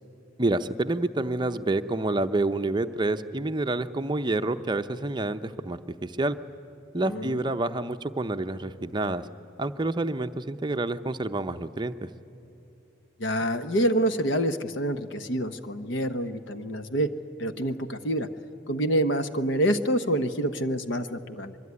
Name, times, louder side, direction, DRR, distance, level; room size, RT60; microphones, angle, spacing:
voice 1, 0.4-6.4 6.9-9.3 9.6-12.1, right 2 dB, 20° right, 9 dB, 0.6 m, -28 dB
voice 2, 7.0-7.4 13.2-17.1 17.4-18.3 18.7-21.6, right 1 dB, 60° left, 10 dB, 1.1 m, -27 dB
24.0 x 22.5 x 9.7 m, 2.9 s
head